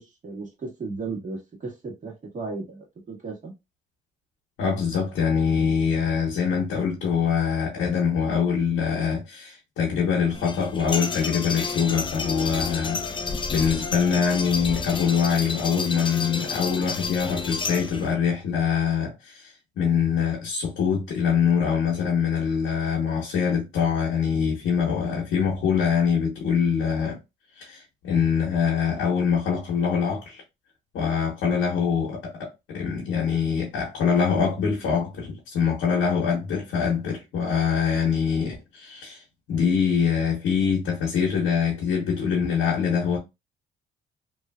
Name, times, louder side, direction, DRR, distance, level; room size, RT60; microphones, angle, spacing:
voice 1, 0.0-3.5, right 3 dB, 40° right, 1.5 m, -35 dB
voice 2, 4.6-27.2 27.6-30.4 30.9-39.2 39.5-43.2, left 6 dB, 90° left, 1.0 m, -24 dB
sound 1, 10.3-18.1, left 4 dB, 25° left, 0.5 m, -31 dB
3.0 x 2.5 x 2.2 m
cardioid pair, 90°, 20 cm